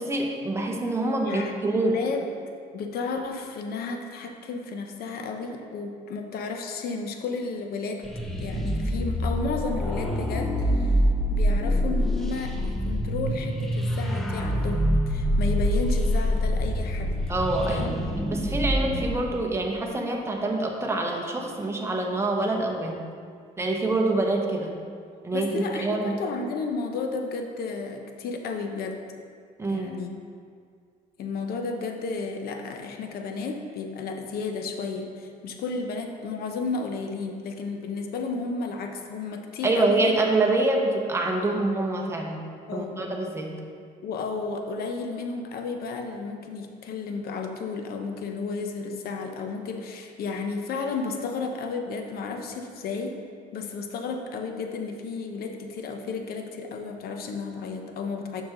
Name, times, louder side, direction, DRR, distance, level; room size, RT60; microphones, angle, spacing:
voice 1, 0.0-2.0 17.3-18.0 18.3-23.0 23.6-24.7 25.2-26.2 29.6-29.9 39.6-42.4 42.7-43.5, right 2 dB, 15° right, 0 dB, 1.0 m, -26 dB
voice 2, 1.2-2.2 2.7-8.1 8.4-11.0 11.3-17.2 17.7-18.1 25.3-29.0 29.7-30.1 31.2-40.2 42.7-43.0 44.0-53.2 53.5-58.4, left 4 dB, 65° left, 4 dB, 0.8 m, -33 dB
sound 1, 8.0-19.1, equal, ahead, 0.6 m, -25 dB
7.0 x 5.9 x 3.8 m, 2.1 s
cardioid pair, 110°, 17 cm